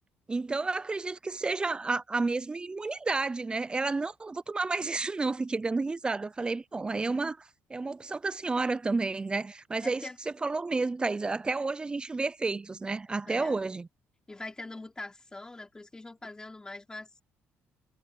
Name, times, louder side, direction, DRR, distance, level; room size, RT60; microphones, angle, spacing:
voice 1, 0.3-10.0 10.4-13.9, right 3 dB, 20° right, 0.4 m, -31 dB
voice 2, 9.8-10.2 13.3-13.6 14.3-17.2, left 2 dB, 15° left, 4.5 m, -43 dB
cardioid pair, 115°, 5 cm